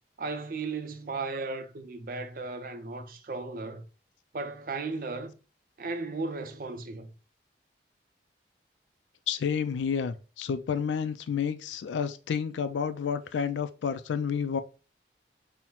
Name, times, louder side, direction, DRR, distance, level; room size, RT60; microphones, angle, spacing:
voice 1, 0.2-3.8 4.3-5.4 5.8-7.1, right 3 dB, 50° right, 0.5 m, -35 dB
voice 2, 9.3-14.6, left 7 dB, 90° left, 0.4 m, -30 dB
5.5 x 2.1 x 2.9 m
head